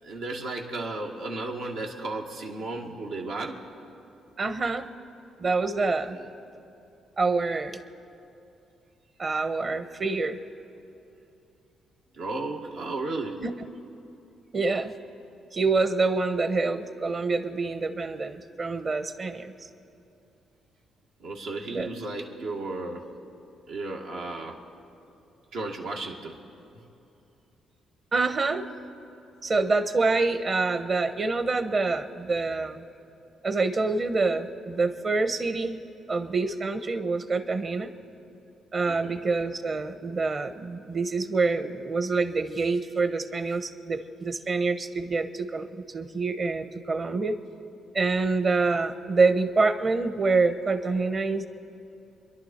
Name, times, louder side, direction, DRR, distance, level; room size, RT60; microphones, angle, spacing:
voice 1, 0.0-3.6 6.2-6.3 12.2-13.4 21.2-23.1 23.7-24.6 25.5-26.3 38.9-39.2, right 2 dB, 85° right, -1 dB, 2.0 m, -34 dB
voice 2, 4.4-4.9 5.4-6.2 7.2-7.8 9.2-10.4 13.4-13.5 14.5-14.9 15.5-19.5 21.7-21.9 28.1-28.6 29.4-32.8 33.4-35.8 36.1-37.9 38.7-47.4 47.9-51.5, right 3 dB, 40° right, 9 dB, 1.1 m, -26 dB
28.5 x 11.5 x 4.4 m, 2.8 s
cardioid pair, 90°, 0 cm